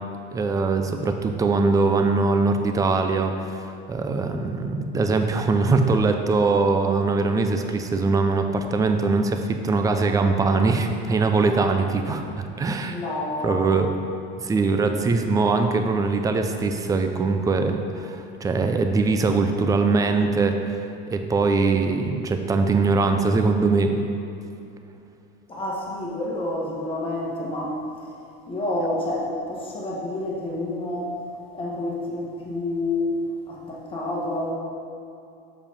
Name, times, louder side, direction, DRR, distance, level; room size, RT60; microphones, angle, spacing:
voice 1, 0.3-12.2 12.6-12.9 13.4-13.9 14.4-24.0, right 3 dB, 10° right, 6 dB, 0.4 m, -22 dB
voice 2, 12.9-13.7 25.5-27.8 28.5-31.2 31.5-33.1 33.5-34.5, left 2 dB, 20° left, -4 dB, 1.5 m, -28 dB
7.2 x 4.9 x 5.1 m, 2.6 s
supercardioid pair, 125°, 29 cm